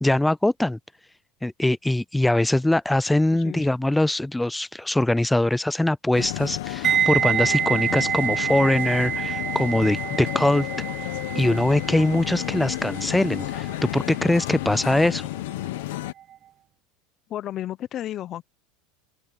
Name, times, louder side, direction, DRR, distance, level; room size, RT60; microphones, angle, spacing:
voice 1, 0.0-0.8 1.4-10.7 11.4-15.3, left 1 dB, 5° left, 0.3 m, -22 dB
voice 2, 3.3-3.7 17.3-18.4, left 12 dB, 40° left, 0.8 m, -32 dB
sound 1, 6.1-16.1, left 17 dB, 80° left, 1.3 m, -32 dB
sound 2, 6.8-15.8 16.1-16.4, right 9 dB, 35° right, 1.3 m, -28 dB
sound 3, 11.7-15.5, right 22 dB, 60° right, 4.4 m, -51 dB
open air
supercardioid pair, 115°, 0 cm